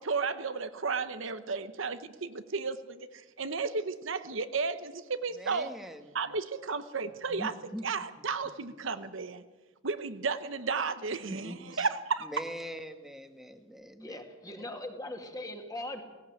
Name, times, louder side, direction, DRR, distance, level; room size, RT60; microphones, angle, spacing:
voice 1, 0.0-5.7 6.1-7.5 7.8-9.4 9.8-12.3, right 4 dB, 65° right, 10 dB, 1.0 m, -33 dB
voice 2, 5.3-6.1 7.0-7.8 11.3-11.9 12.2-14.7, equal, ahead, 7 dB, 1.4 m, -43 dB
voice 3, 14.0-16.0, left 1 dB, 15° left, 4 dB, 2.3 m, -40 dB
17.5 x 17.5 x 9.0 m, 1.2 s
head